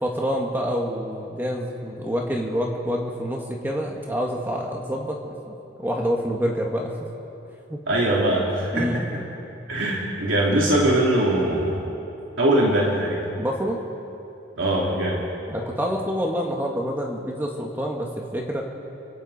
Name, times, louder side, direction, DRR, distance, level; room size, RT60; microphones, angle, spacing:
voice 1, 0.0-6.9 7.7-7.8 8.7-9.0 13.3-13.8 15.5-18.6, equal, 10° right, 0 dB, 1.6 m, -27 dB
voice 2, 7.9-9.0 9.7-11.8 12.4-13.2 14.6-15.2, right 1 dB, 85° right, -4 dB, 3.1 m, -21 dB
29.0 x 24.0 x 4.2 m, 2.9 s
head